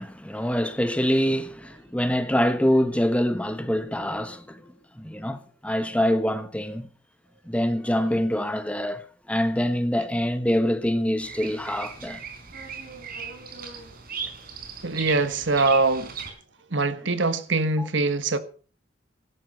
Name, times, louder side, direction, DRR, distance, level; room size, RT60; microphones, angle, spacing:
voice 1, 0.0-4.6 5.0-5.4 5.6-6.9 7.5-9.0 9.3-12.2 17.8-17.9, equal, 5° left, 1.4 m, -25 dB
Bird vocalization bird call bird song, 11.2-16.3, right 6 dB, 55° right, 4.3 m, -37 dB
voice 2, 14.8-16.1 16.7-18.4, right 3 dB, 75° right, 1.5 m, -23 dB
17.0 x 12.5 x 5.5 m
head